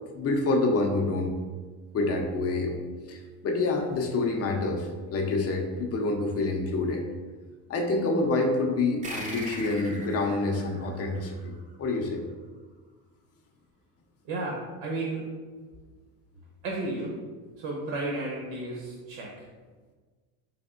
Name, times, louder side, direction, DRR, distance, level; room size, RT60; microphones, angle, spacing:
voice 1, 0.2-1.4 1.9-2.8 3.1-3.2 3.4-7.0 7.7-12.2, left 2 dB, 30° left, 3 dB, 0.5 m, -27 dB
sound 1, 9.0-12.0, right 1 dB, 15° right, 0.5 m, -41 dB
voice 2, 14.3-15.2 16.6-17.1 17.6-19.5, right 2 dB, 65° right, -3 dB, 0.8 m, -33 dB
3.5 x 3.4 x 2.4 m, 1.4 s
supercardioid pair, 105°, 46 cm